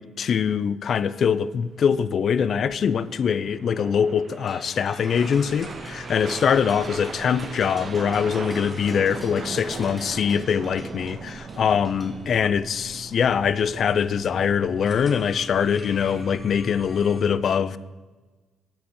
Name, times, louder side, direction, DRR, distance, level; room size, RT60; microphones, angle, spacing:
voice 1, 0.0-17.8, left 7 dB, 55° left, 0.4 m, -23 dB
sound 1, 1.8-15.1, right 5 dB, 45° right, 0.4 m, -39 dB
sound 2, 4.5-12.6, equal, ahead, 1.9 m, -48 dB
sound 3, 5.1-17.2, equal, 20° left, 1.9 m, -43 dB
8.2 x 6.1 x 6.8 m
cardioid pair, 90°, 0 cm